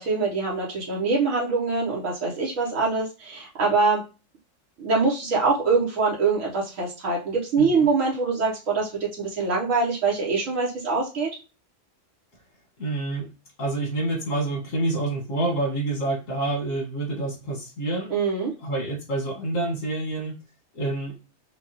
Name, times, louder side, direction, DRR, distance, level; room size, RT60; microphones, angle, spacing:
voice 1, 0.0-4.0 4.8-11.3 18.1-18.5, right 4 dB, 85° right, -4 dB, 1.3 m, -24 dB
voice 2, 7.6-7.9 12.8-13.3 13.6-18.2 18.6-20.3 20.7-21.2, right 2 dB, 75° left, -1 dB, 1.8 m, -27 dB
5.6 x 2.3 x 2.9 m, 0.31 s
omnidirectional pair, 1.3 m